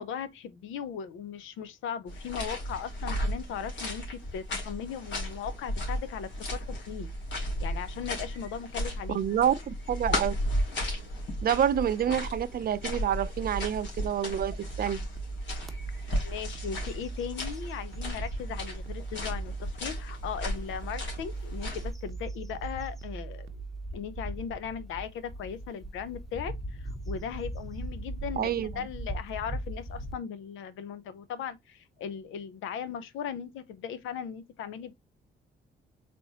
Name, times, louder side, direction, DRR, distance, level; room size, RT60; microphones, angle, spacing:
voice 1, 0.0-7.1 7.6-9.2 16.1-23.5 23.9-26.6 27.1-34.9, left 8 dB, 85° left, 0.7 m, -38 dB
sound 1, 2.1-21.9, equal, 65° left, 2.2 m, -35 dB
voice 2, 9.1-10.3 11.4-15.0 28.4-28.9, right 9 dB, 50° right, 0.5 m, -28 dB
sound 2, 14.4-24.0, right 3 dB, 80° right, 0.7 m, -40 dB
sound 3, 15.6-15.8 16.3-16.5 16.9-18.4 19.0-19.1 20.8-30.1, right 1 dB, ahead, 0.9 m, -40 dB
4.1 x 3.4 x 2.8 m
cardioid pair, 90°, 20 cm